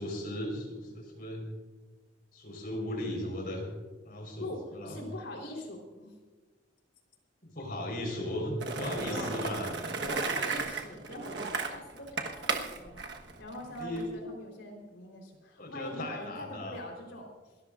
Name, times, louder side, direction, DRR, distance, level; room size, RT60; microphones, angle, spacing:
voice 1, 0.0-1.5 2.3-3.7 4.0-5.1 7.4-9.7 13.8-14.1 15.6-16.8, left 1 dB, 50° left, 1 dB, 4.4 m, -37 dB
voice 2, 4.4-6.1 9.1-9.4 10.0-13.1 13.4-17.4, left 1 dB, 75° left, 1 dB, 3.8 m, -43 dB
Skateboard, 8.6-14.1, right 4 dB, 60° right, 1.3 m, -34 dB
28.5 x 13.5 x 2.5 m, 1.4 s
head